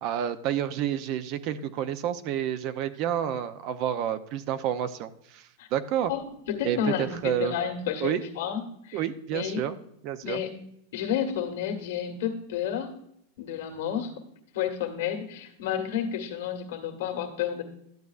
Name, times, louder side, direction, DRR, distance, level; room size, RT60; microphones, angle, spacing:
voice 1, 0.0-6.1 6.6-7.5 8.0-8.3 8.9-9.7 10.0-10.4, right 10 dB, 45° right, 11 dB, 0.6 m, -29 dB
voice 2, 6.1-9.0 9.3-9.6 10.2-10.5 10.9-12.9 13.4-14.1 14.5-17.6, left 9 dB, 70° left, 4 dB, 1.7 m, -31 dB
12.0 x 7.9 x 2.5 m, 0.74 s
supercardioid pair, 140°, 0 cm